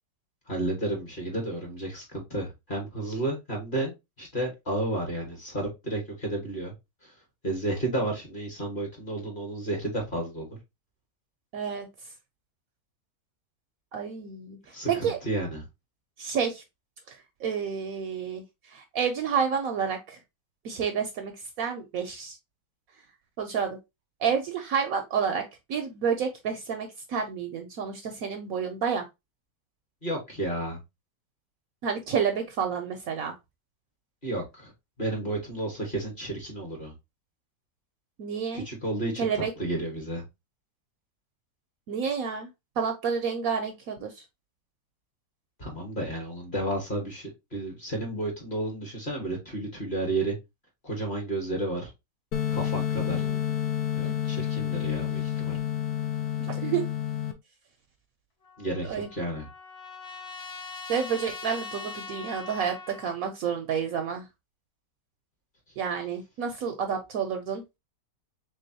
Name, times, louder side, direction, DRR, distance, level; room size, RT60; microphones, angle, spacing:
voice 1, 0.5-3.9 4.2-6.7 7.0-7.1 7.4-10.5 14.7-15.6 30.0-30.8 34.2-34.7 35.0-36.9 38.5-39.3 39.6-40.2 45.6-50.4 50.8-51.9 52.5-53.3 54.0-55.6 58.6-59.5, right 1 dB, 30° left, 1.3 m, -32 dB
voice 2, 11.5-11.9 13.9-14.6 14.9-15.2 16.2-16.6 17.1-20.2 20.6-22.4 23.4-23.8 24.2-25.4 25.7-29.0 31.8-33.3 38.2-38.6 39.2-39.5 41.9-42.5 42.8-44.2 53.1-53.4 54.0-54.2 56.5-56.9 58.9-59.1 60.9-64.3 65.8-67.6, right 7 dB, 65° right, 0.9 m, -29 dB
sound 1, 52.3-57.3, left 10 dB, 70° left, 1.1 m, -29 dB
Trumpet, 58.4-63.2, left 4 dB, 50° left, 0.8 m, -41 dB
3.8 x 3.6 x 2.7 m
omnidirectional pair, 1.8 m